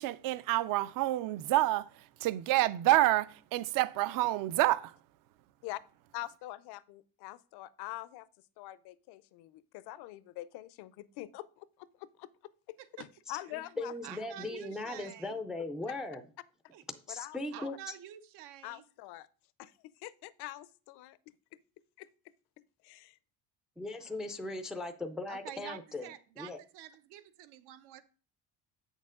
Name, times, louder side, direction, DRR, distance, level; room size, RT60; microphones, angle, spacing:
voice 1, 0.0-4.9, right 16 dB, 55° right, 0.5 m, -28 dB
voice 2, 6.1-8.3 8.6-11.7 12.0-12.3 13.0-13.9 17.1-17.7 18.6-19.3 19.6-21.2 22.0-22.3 22.8-23.2, left 16 dB, 80° left, 0.7 m, -45 dB
voice 3, 13.3-16.2 17.1-18.0 23.8-26.6, left 2 dB, ahead, 0.3 m, -39 dB
voice 4, 14.0-15.4 16.7-16.8 17.5-18.8 24.0-24.1 25.3-28.0, right 12 dB, 85° right, 1.0 m, -48 dB
8.3 x 6.5 x 3.7 m
cardioid pair, 175°, 39 cm